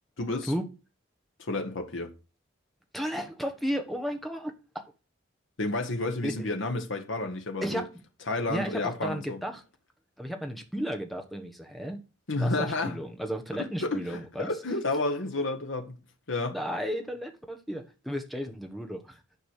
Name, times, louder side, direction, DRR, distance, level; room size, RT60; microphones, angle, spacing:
voice 1, 0.2-0.5 1.4-2.1 5.6-7.9 8.3-9.4 12.3-12.9 13.6-16.0 16.3-16.6, left 2 dB, 80° left, 1.5 m, -31 dB
voice 2, 2.9-4.8 6.2-6.5 7.6-7.9 8.5-9.6 10.2-12.0 12.4-14.5 16.5-19.2, equal, ahead, 1.2 m, -34 dB
10.5 x 5.0 x 6.6 m
head